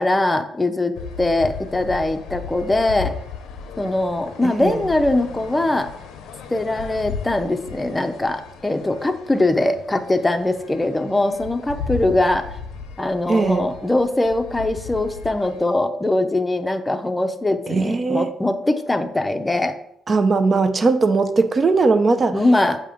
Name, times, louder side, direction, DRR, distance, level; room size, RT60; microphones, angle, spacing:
voice 1, 0.0-3.1 3.8-5.9 6.5-12.5 13.0-19.8 22.3-22.8, left 2 dB, 15° left, 6 dB, 0.6 m, -21 dB
sound 1, 1.0-15.7, left 6 dB, 90° left, 0.7 m, -36 dB
voice 2, 4.4-4.8 13.3-13.7 17.7-18.3 20.1-22.4, right 3 dB, 35° right, 8 dB, 0.6 m, -19 dB
7.4 x 2.9 x 5.0 m, 0.75 s
cardioid pair, 90°, 0 cm